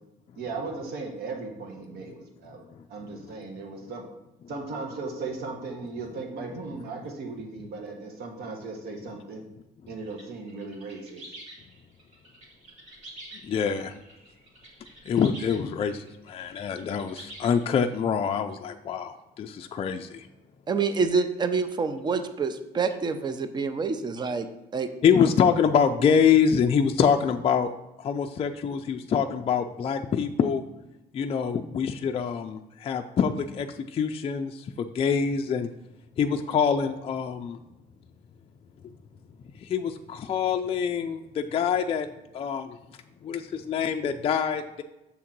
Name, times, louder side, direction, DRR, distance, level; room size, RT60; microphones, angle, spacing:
voice 1, 0.4-2.6 2.9-4.0 4.5-9.4 9.9-11.2, right 3 dB, 70° right, 2 dB, 1.3 m, -37 dB
sound 1, 10.1-18.0, right 1 dB, 45° right, 2.2 m, -47 dB
voice 2, 13.4-13.9 15.1-20.3 25.0-27.7 28.0-30.6 31.1-35.7 36.2-37.6 39.6-42.1 42.3-42.8 43.2-44.8, left 7 dB, 35° left, 5 dB, 0.4 m, -25 dB
voice 3, 20.7-24.5 24.7-24.9, right 5 dB, 25° right, 10 dB, 0.5 m, -27 dB
7.0 x 3.7 x 5.9 m, 0.95 s
cardioid pair, 110°, 17 cm